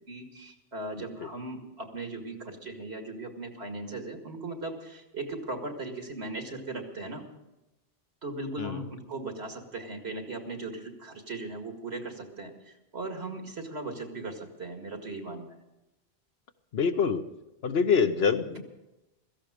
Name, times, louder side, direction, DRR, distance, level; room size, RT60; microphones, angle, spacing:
voice 1, 0.1-7.2 8.2-15.6 18.6-18.7, right 2 dB, 75° right, 4 dB, 2.4 m, -38 dB
voice 2, 1.0-1.3 8.6-8.8 16.7-17.2 17.6-18.6, left 6 dB, 70° left, 9 dB, 1.1 m, -26 dB
16.5 x 14.5 x 5.0 m, 0.96 s
omnidirectional pair, 1.1 m